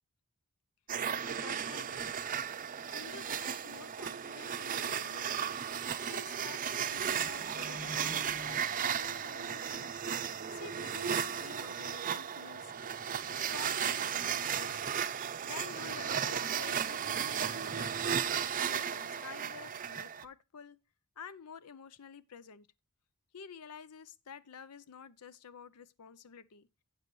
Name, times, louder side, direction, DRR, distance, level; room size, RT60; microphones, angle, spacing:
sound 1, 0.9-20.2, right 8 dB, 40° right, 0.6 m, -35 dB
voice 1, 1.0-2.1 2.9-14.8 15.4-18.1 18.6-20.8 21.2-22.7 23.3-26.7, left 6 dB, 85° left, 0.6 m, -50 dB
sound 2, 7.0-9.0, equal, 30° left, 2.3 m, -47 dB
12.0 x 8.9 x 3.1 m
head